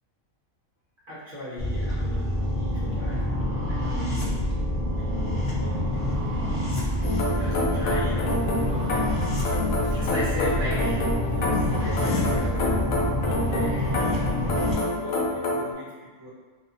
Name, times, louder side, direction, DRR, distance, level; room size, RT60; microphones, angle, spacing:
voice 1, 1.1-6.8 7.2-9.0 9.5-12.9 13.2-15.9 16.2-16.3, left 1 dB, 50° right, -8 dB, 0.8 m, -38 dB
sound 1, 1.6-14.7, left 1 dB, 20° left, 0.8 m, -27 dB
Breathing / Train, 5.7-11.4, right 2 dB, 80° right, 1.0 m, -35 dB
sound 2, 7.0-15.7, left 2 dB, 80° left, 1.0 m, -28 dB
2.6 x 2.3 x 2.7 m, 1.4 s
omnidirectional pair, 1.4 m